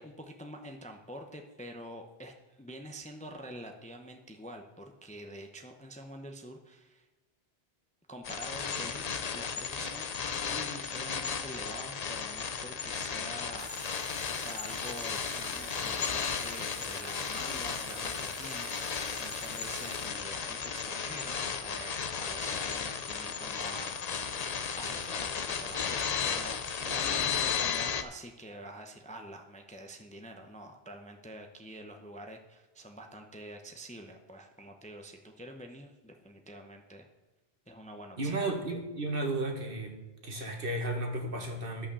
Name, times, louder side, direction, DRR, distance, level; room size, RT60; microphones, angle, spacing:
voice 1, 0.0-7.1 8.1-9.1 9.3-10.1 10.5-24.4 24.7-37.1 37.7-38.4, right 1 dB, 10° left, 4 dB, 0.7 m, -47 dB
sound 1, 8.2-28.0, left 6 dB, 45° left, 0.7 m, -34 dB
Water tap faucet, 13.6-20.6, right 10 dB, 80° right, 0.9 m, -49 dB
voice 2, 38.2-40.0 40.2-41.9, right 2 dB, 60° right, 2 dB, 1.7 m, -33 dB
11.0 x 5.7 x 7.0 m, 1.2 s
omnidirectional pair, 1.1 m